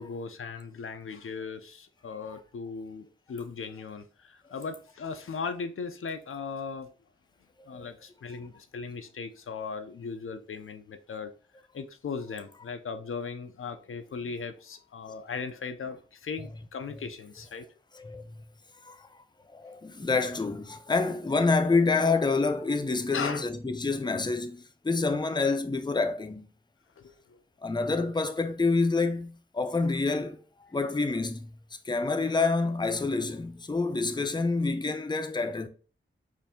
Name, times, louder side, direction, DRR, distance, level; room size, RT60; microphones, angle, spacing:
voice 1, 0.0-6.9 7.7-11.3 11.7-17.7 23.1-23.5 27.0-27.4, left 5 dB, 85° left, 0.4 m, -38 dB
voice 2, 7.6-7.9 16.4-16.5 16.8-17.0 17.4-17.5 17.9-18.4 18.8-19.1 19.5-26.5 27.6-30.4 30.7-31.5 31.8-35.7, left 3 dB, 20° left, 0.5 m, -28 dB
4.5 x 2.6 x 3.5 m
wide cardioid pair, 60°, 21 cm